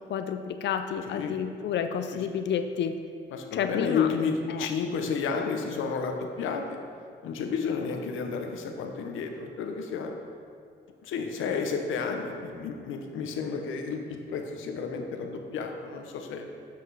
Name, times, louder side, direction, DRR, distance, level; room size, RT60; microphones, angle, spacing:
voice 1, 0.1-3.0 3.5-4.1 4.5-4.7, left 7 dB, 65° left, 8 dB, 0.5 m, -30 dB
voice 2, 1.1-1.4 3.3-6.8 7.2-10.1 11.0-16.4, left 5 dB, 80° left, 4 dB, 0.9 m, -31 dB
8.5 x 5.9 x 4.8 m, 2.2 s
cardioid pair, 90°, 20 cm